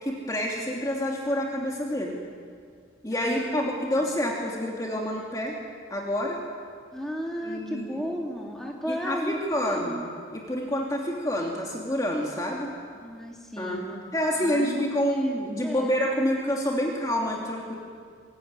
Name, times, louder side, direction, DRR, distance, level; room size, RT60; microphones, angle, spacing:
voice 1, 0.0-2.2 3.0-5.6 5.9-6.4 7.4-8.0 8.9-10.0 10.3-12.7 13.6-13.8 14.1-17.7, equal, 15° left, -2 dB, 2.7 m, -28 dB
voice 2, 3.1-3.7 6.9-9.4 9.7-10.0 13.0-14.0 14.4-15.4 15.6-15.9, equal, ahead, -1 dB, 3.1 m, -34 dB
25.0 x 22.0 x 9.8 m, 2.1 s
head